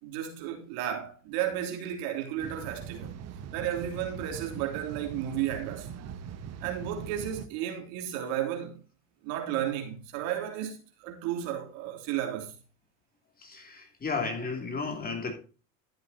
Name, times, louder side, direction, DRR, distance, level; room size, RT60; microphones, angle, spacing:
voice 1, 0.0-3.1 3.5-5.9 6.6-8.8 9.2-12.5, right 10 dB, 65° right, 3.3 m, -33 dB
sound 1, 2.4-7.5, right 8 dB, 40° right, 1.4 m, -41 dB
voice 2, 13.4-15.4, left 4 dB, 25° left, 3.0 m, -33 dB
13.0 x 8.2 x 2.8 m
supercardioid pair, 100°, 39 cm